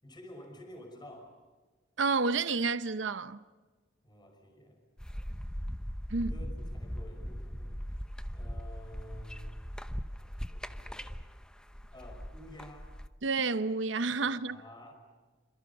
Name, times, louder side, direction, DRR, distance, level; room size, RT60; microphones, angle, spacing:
voice 1, 0.0-1.4 4.0-4.8 6.3-8.1 8.3-9.7 10.0-11.2 11.9-12.9 14.2-14.9, left 1 dB, 25° left, 5.7 m, -51 dB
voice 2, 2.0-3.4 6.1-6.3 13.2-14.6, right 4 dB, 80° right, 0.8 m, -30 dB
sound 1, 5.0-13.1, equal, 5° left, 0.9 m, -40 dB
28.0 x 26.5 x 5.5 m
head